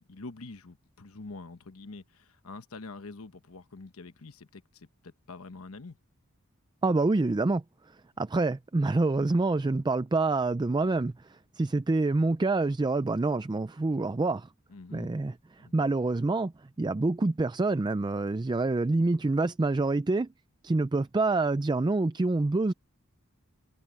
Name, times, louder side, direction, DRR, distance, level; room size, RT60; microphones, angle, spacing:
voice 1, 0.1-6.0 14.7-15.1 15.6-15.9, left 3 dB, 70° left, 1.1 m, -45 dB
voice 2, 6.8-7.6 8.2-14.5 14.9-16.5 16.8-20.3 20.6-22.7, right 3 dB, 20° right, 0.4 m, -27 dB
head